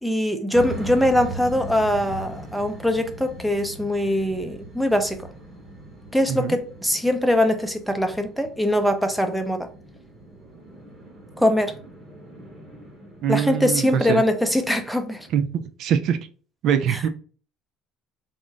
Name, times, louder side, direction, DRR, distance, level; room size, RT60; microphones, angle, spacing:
voice 1, 0.0-5.3 6.1-9.7 11.4-11.7 13.3-15.3 16.9-17.0, left 1 dB, ahead, 0.5 m, -22 dB
sound 1, 0.5-15.3, right 2 dB, 20° right, 1.2 m, -40 dB
voice 2, 13.2-14.2 15.3-16.2 16.6-17.1, right 8 dB, 60° right, 0.4 m, -23 dB
3.6 x 2.1 x 3.8 m
cardioid pair, 120°, 0 cm